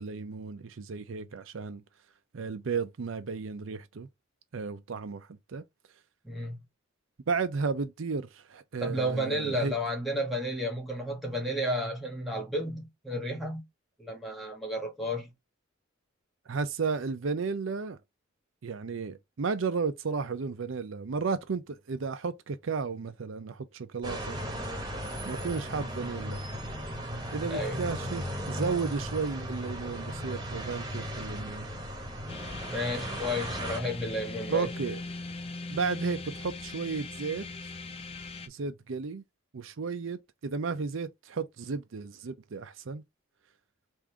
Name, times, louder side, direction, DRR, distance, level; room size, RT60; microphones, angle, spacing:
voice 1, 0.0-1.8 2.3-4.1 4.5-5.6 7.3-9.7 16.5-18.0 18.6-24.4 25.2-26.4 27.3-31.7 34.5-35.0 35.7-37.7 38.5-39.2 39.5-43.0, right 5 dB, 70° right, 0.5 m, -33 dB
voice 2, 6.2-6.6 8.8-13.6 14.0-15.3 27.5-27.9 32.7-34.7, equal, ahead, 1.4 m, -32 dB
sound 1, 24.0-33.8, equal, 20° right, 1.0 m, -36 dB
sound 2, 32.3-38.5, left 3 dB, 30° left, 0.5 m, -40 dB
3.6 x 2.6 x 4.6 m
head